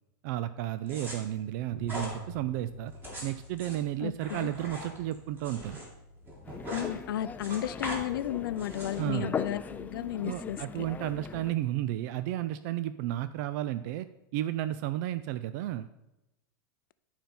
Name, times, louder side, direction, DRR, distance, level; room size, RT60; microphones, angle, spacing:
voice 1, 0.2-2.9 3.2-5.8 9.0-9.4 10.2-14.1 14.3-15.9, right 13 dB, 55° right, 13 dB, 0.4 m, -33 dB
sound 1, 0.9-1.2 1.8-2.1 2.9-5.8 6.1-6.9 7.2-8.0 8.6-9.0, equal, 20° right, 2.8 m, -40 dB
Bass guitar, 1.7-11.4, right 1 dB, 85° right, 1.5 m, -50 dB
voice 2, 4.0-4.5 6.7-10.9, left 12 dB, 85° left, 15 dB, 0.5 m, -34 dB
sound 2, 6.5-11.5, left 6 dB, 15° left, 0.4 m, -39 dB
11.5 x 4.4 x 5.4 m, 0.93 s
supercardioid pair, 135°, 11 cm